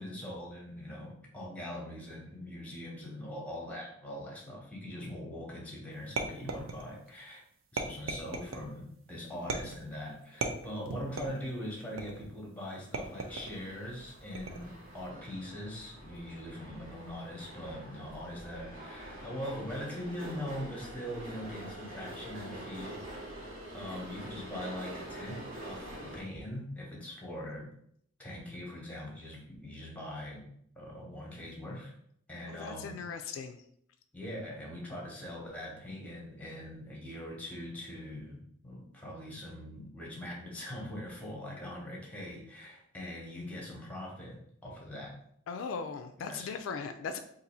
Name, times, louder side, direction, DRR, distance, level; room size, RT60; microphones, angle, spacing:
voice 1, 0.0-7.4 7.7-23.4 23.7-27.7 28.2-30.5 30.8-31.9 32.3-33.0 34.1-45.2 46.2-46.5, left 1 dB, 5° left, -2 dB, 0.8 m, -42 dB
sound 1, 6.2-7.1 7.8-8.7 9.5-9.9 10.4-11.5 12.0-12.4 12.9-13.6 14.3-14.8, right 3 dB, 75° right, 0.5 m, -37 dB
sound 2, 13.0-26.2, right 1 dB, 45° right, 0.9 m, -46 dB
voice 2, 32.5-33.6 45.5-47.2, left 5 dB, 70° left, 8 dB, 0.3 m, -38 dB
2.6 x 2.6 x 4.2 m, 0.68 s
head